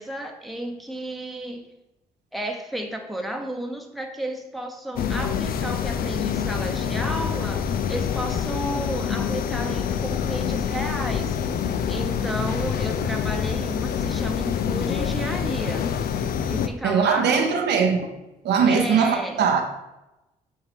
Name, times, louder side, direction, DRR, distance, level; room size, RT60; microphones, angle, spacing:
voice 1, 0.0-1.6 2.3-11.4 11.9-15.9 16.5-17.4 18.7-19.4, right 1 dB, ahead, 3 dB, 1.0 m, -32 dB
sound 1, 5.0-16.7, left 8 dB, 55° left, 0.5 m, -26 dB
voice 2, 16.8-18.1 18.4-19.6, right 6 dB, 65° right, 4 dB, 0.8 m, -20 dB
7.1 x 2.8 x 5.2 m, 0.98 s
hypercardioid pair, 45°, 18 cm